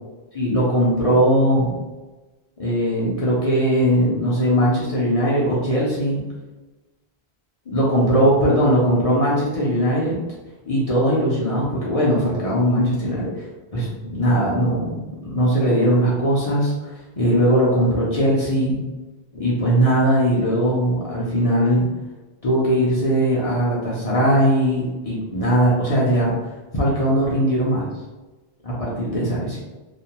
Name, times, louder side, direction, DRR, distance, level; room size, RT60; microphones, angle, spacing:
voice 1, 0.3-1.8 2.6-6.2 7.7-10.2 10.7-13.5 13.7-18.8 19.3-21.9 22.4-26.3 26.7-27.8 28.6-29.6, equal, 40° left, -6 dB, 0.6 m, -20 dB
2.5 x 2.1 x 2.8 m, 1.2 s
omnidirectional pair, 1.1 m